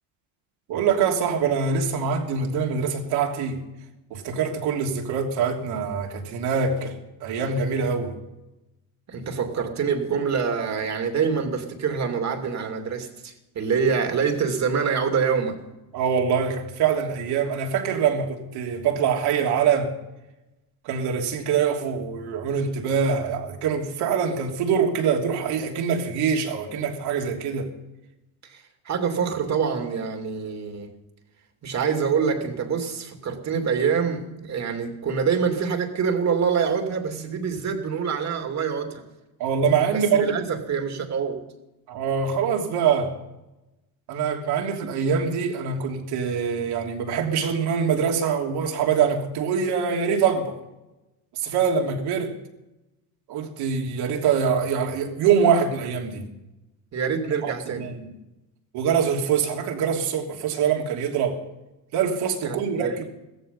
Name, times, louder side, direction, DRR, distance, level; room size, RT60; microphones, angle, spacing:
voice 1, 0.7-3.6 4.1-6.9 7.2-8.1 15.9-19.9 20.8-27.7 39.4-40.3 41.9-43.1 44.1-50.6 51.3-52.3 53.3-56.2 57.4-58.1 58.7-61.4 61.9-63.1, right 6 dB, 65° right, 3.1 m, -24 dB
voice 2, 9.1-15.5 28.4-30.9 31.6-39.0 39.9-41.4 56.9-57.9 62.4-63.0, right 6 dB, 40° right, 2.8 m, -26 dB
16.0 x 14.0 x 5.5 m
supercardioid pair, 105°, 41 cm